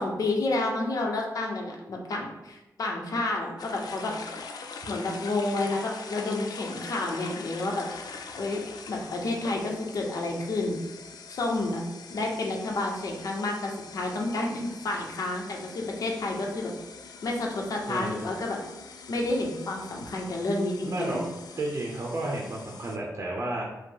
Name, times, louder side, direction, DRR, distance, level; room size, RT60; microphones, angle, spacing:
voice 1, 0.0-4.3 4.9-7.9 8.4-10.8 11.3-11.8 12.1-16.7 17.2-18.6 19.1-21.2, left 2 dB, 65° left, 0 dB, 0.9 m, -30 dB
sound 1, 3.6-23.0, left 5 dB, 85° left, 0.4 m, -44 dB
voice 2, 17.9-18.3 20.8-21.2 21.6-23.6, right 2 dB, 45° right, -2 dB, 0.7 m, -32 dB
5.0 x 2.1 x 4.6 m, 1.0 s
wide cardioid pair, 150°, 7 cm